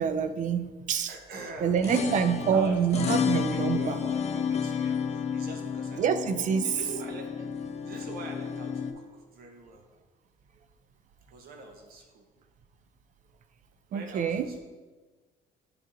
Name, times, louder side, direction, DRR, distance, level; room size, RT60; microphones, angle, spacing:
voice 1, 0.0-1.1 1.6-4.0 6.0-6.7 13.9-14.5, right 7 dB, 50° right, 11 dB, 0.4 m, -26 dB
voice 2, 1.1-3.2 3.5-6.0 6.6-9.8 11.3-12.3 13.9-14.6, right 3 dB, 65° right, 3 dB, 0.8 m, -44 dB
sound 1, 1.6-8.9, left 6 dB, 40° left, 0.6 m, -31 dB
10.5 x 3.8 x 2.6 m, 1.4 s
cardioid pair, 110°, 17 cm